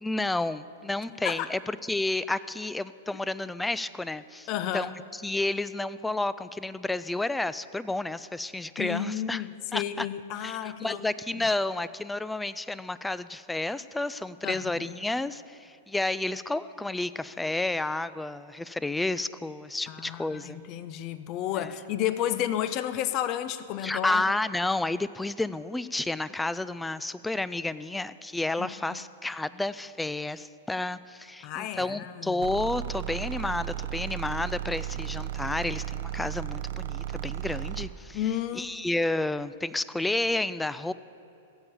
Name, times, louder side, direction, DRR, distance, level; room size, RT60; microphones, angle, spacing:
voice 1, 0.0-4.5 4.7-4.9 5.2-9.4 9.7-10.1 10.4-20.6 21.6-21.7 23.8-38.2 38.5-40.9, left 2 dB, 5° left, 16 dB, 0.4 m, -31 dB
voice 2, 4.5-4.9 8.8-11.0 14.4-14.9 19.9-24.2 28.6-29.0 31.4-32.4 38.1-38.8, left 11 dB, 40° left, 13 dB, 0.7 m, -32 dB
sound 1, 32.4-38.0, right 12 dB, 60° right, 0.6 m, -34 dB
16.0 x 7.0 x 7.2 m, 2.8 s
hypercardioid pair, 105°, 0 cm